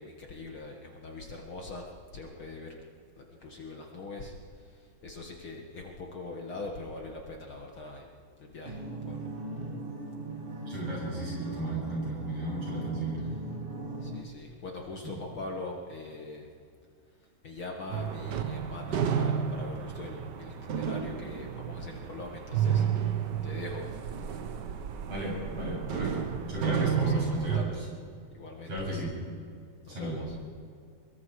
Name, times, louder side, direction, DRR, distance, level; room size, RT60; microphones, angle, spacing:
voice 1, 0.0-1.9 2.1-2.8 3.2-8.1 8.4-9.3 14.0-16.5 17.4-23.9 26.8-27.9 28.3-28.9 29.9-30.4, left 2 dB, 50° left, 1 dB, 2.3 m, -42 dB
sound 1, 8.6-14.2, right 2 dB, 30° right, 1.1 m, -39 dB
voice 2, 10.7-13.2 15.0-15.2 25.1-27.8 28.7-29.2 29.9-30.2, right 1 dB, 55° right, -4 dB, 8.8 m, -35 dB
sound 2, 17.9-27.6, right 8 dB, 70° right, 1.0 m, -31 dB
24.5 x 22.5 x 4.9 m, 2.2 s
omnidirectional pair, 3.4 m